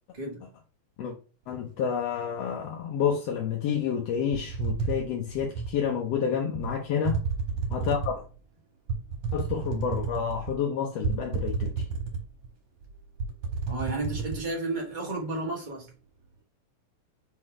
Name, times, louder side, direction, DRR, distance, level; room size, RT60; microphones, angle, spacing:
voice 1, 0.1-0.4 13.7-15.9, right 2 dB, 90° right, 0.4 m, -32 dB
voice 2, 1.5-7.2 7.7-8.2 9.3-11.8, left 7 dB, 70° left, 1.6 m, -29 dB
sound 1, 4.3-5.8 6.5-6.7 7.0-8.2 8.9-10.5 11.0-12.5 12.8-12.9 13.2-14.4, right 4 dB, 55° right, 2.5 m, -31 dB
5.2 x 3.8 x 4.8 m
omnidirectional pair, 3.6 m